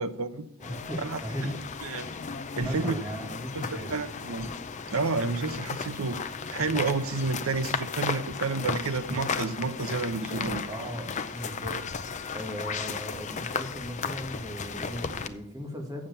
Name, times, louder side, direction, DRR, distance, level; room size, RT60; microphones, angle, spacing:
voice 1, 0.0-0.5 1.0-1.2 1.8-2.1 2.6-2.9 3.6-4.5 4.9-6.2 6.5-10.6, right 3 dB, 65° right, 11 dB, 0.7 m, -30 dB
sound 1, 0.6-15.3, left 5 dB, 35° left, 0.5 m, -35 dB
voice 2, 0.6-1.6 2.6-4.0 10.7-11.8 12.3-16.1, equal, 15° right, 1 dB, 1.7 m, -37 dB
sound 2, 4.4-4.9 6.6-7.0 9.0-9.7 10.4-11.1, equal, 15° left, 4.6 m, -44 dB
7.3 x 7.2 x 6.7 m, 0.77 s
head